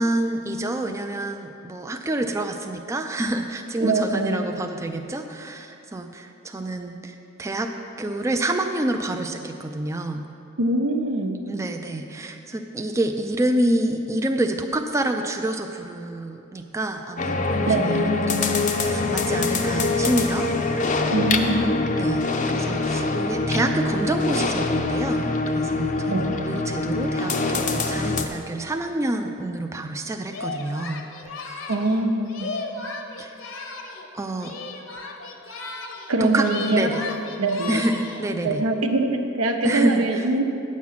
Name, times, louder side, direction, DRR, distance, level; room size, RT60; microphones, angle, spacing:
voice 1, 0.0-7.7 8.0-10.3 11.5-21.0 21.9-31.1 33.2-33.3 34.1-34.5 36.2-37.0 37.7-38.6 39.6-40.4, right 1 dB, 15° right, 5 dB, 0.3 m, -27 dB
voice 2, 3.8-4.5 10.6-11.4 17.7-18.1 21.1-21.8 26.1-26.3 31.7-32.5 36.1-36.9 37.4-37.8 38.4-40.4, right 2 dB, 85° right, 4 dB, 0.9 m, -23 dB
sound 1, 17.2-28.3, left 3 dB, 35° left, 0.5 m, -24 dB
Singing, 30.3-34.1 34.4-36.1 36.4-38.3, left 3 dB, 65° left, 0.9 m, -35 dB
9.5 x 7.3 x 5.7 m, 2.7 s
head